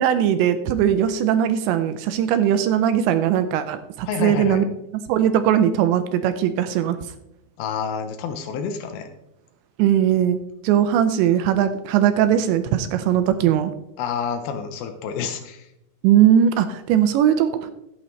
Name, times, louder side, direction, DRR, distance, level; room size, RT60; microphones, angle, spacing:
voice 1, 0.0-4.6 5.1-7.0 9.8-13.7 16.0-17.7, right 10 dB, 80° right, 10 dB, 2.7 m, -19 dB
voice 2, 4.1-4.6 7.6-9.1 14.0-15.7, left 6 dB, 90° left, 7 dB, 2.1 m, -28 dB
14.5 x 9.2 x 3.2 m, 0.83 s
omnidirectional pair, 5.5 m